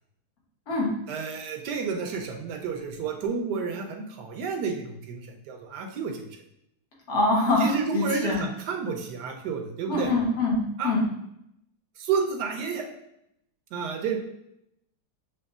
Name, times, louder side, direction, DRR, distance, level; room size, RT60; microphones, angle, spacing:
voice 1, 1.1-6.2 7.6-10.1 10.8-10.9 12.0-12.9 13.7-14.2, right 5 dB, 80° right, 3 dB, 1.2 m, -30 dB
voice 2, 7.1-8.4 9.9-11.1, left 2 dB, 65° left, -3 dB, 1.6 m, -24 dB
6.9 x 3.0 x 2.4 m, 0.79 s
omnidirectional pair, 1.8 m